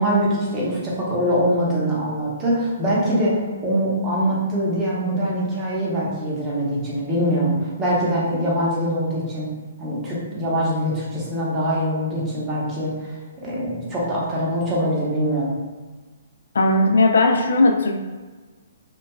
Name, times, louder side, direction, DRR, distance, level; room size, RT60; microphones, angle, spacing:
voice 1, 0.0-9.5 9.8-12.9 13.4-15.5, equal, 20° right, -5 dB, 0.7 m, -23 dB
voice 2, 16.5-18.0, left 2 dB, 85° left, 3 dB, 0.3 m, -17 dB
2.9 x 2.4 x 2.2 m, 1.3 s
hypercardioid pair, 155°, 0 cm